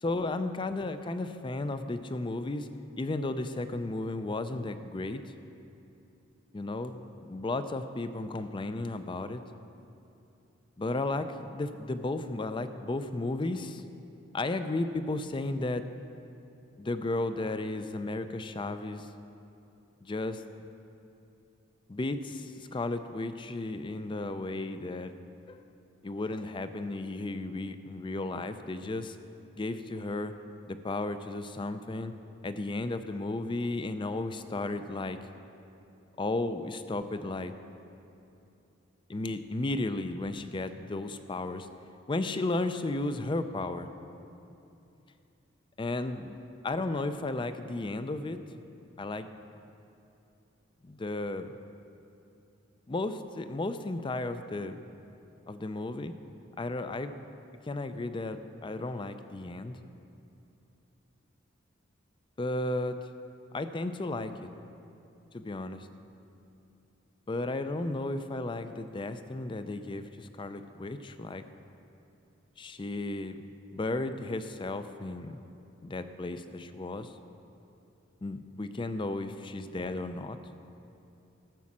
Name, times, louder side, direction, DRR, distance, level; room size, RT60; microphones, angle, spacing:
voice 1, 0.0-2.7 3.0-5.2 6.5-9.4 10.8-13.8 14.3-15.8 16.8-19.1 20.0-20.4 21.9-25.1 25.5-25.7 26.0-29.2 29.5-30.3 30.7-32.1 32.4-35.2 36.2-37.5 39.1-41.7 42.1-43.9 45.8-46.4 46.6-48.4 49.0-49.3 50.8-51.5 52.9-54.8 55.5-56.1 56.6-57.2 57.7-59.8 62.4-63.0 63.5-64.5 65.3-65.9 67.3-71.4 72.6-73.4 73.7-75.4 75.8-77.1 78.2-80.4, left 2 dB, 25° left, 10 dB, 0.4 m, -34 dB
13.5 x 6.2 x 7.3 m, 2.8 s
head